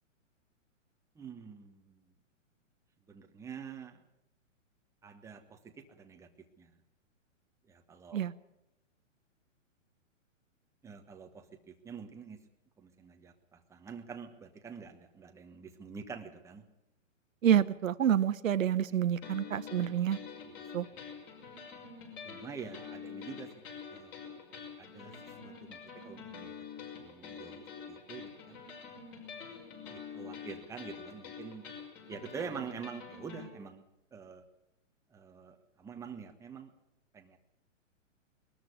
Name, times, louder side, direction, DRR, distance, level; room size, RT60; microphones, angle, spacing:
voice 1, 1.1-2.0 3.1-4.0 5.0-6.8 7.7-8.2 10.8-12.4 12.8-16.6 18.9-19.0 19.6-19.7 20.9-21.0 22.2-23.5 23.9-24.4 24.8-25.2 25.4-26.6 26.9-27.6 27.9-28.6 29.9-31.7 32.1-33.8 34.1-34.4 35.1-36.7 37.1-37.4, right 6 dB, 5° right, 4 dB, 1.2 m, -46 dB
voice 2, 17.4-20.2 20.7-20.9, right 10 dB, 80° right, 13 dB, 1.1 m, -28 dB
sound 1, 19.2-33.5, left 6 dB, 30° left, 5.8 m, -47 dB
21.0 x 13.5 x 9.5 m, 0.88 s
hypercardioid pair, 150°, 39 cm